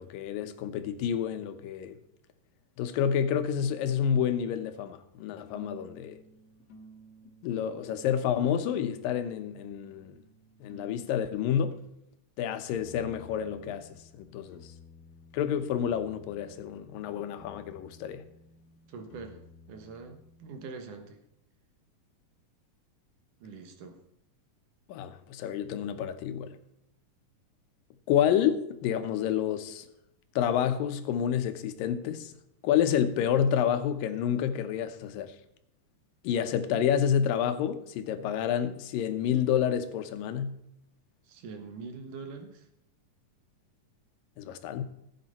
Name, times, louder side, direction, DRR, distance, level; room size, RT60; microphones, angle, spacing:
voice 1, 0.0-2.0 2.8-6.2 7.4-10.1 10.6-11.8 12.4-14.7 15.3-18.3 24.9-26.6 28.1-29.9 30.4-32.3 32.6-35.3 36.2-40.6 44.4-44.8, left 9 dB, 90° left, 2.6 m, -29 dB
sound 1, 5.2-11.9 12.7-20.8, left 1 dB, 50° left, 2.5 m, -54 dB
voice 2, 18.9-19.4 19.7-21.2 23.4-24.0 41.2-42.7, right 4 dB, 70° right, 2.8 m, -43 dB
15.0 x 8.8 x 4.2 m
omnidirectional pair, 3.9 m